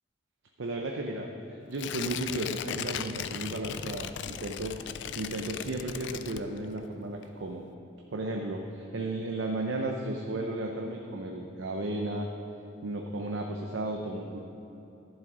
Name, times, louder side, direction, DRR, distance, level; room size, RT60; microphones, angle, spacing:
voice 1, 0.6-4.8 5.2-7.7 8.1-12.3 12.8-14.4, right 2 dB, 85° right, 1 dB, 0.7 m, -34 dB
Tearing, 1.7-6.9 7.2-7.3, left 8 dB, 75° left, 0.4 m, -37 dB
11.5 x 7.5 x 4.9 m, 3.0 s
head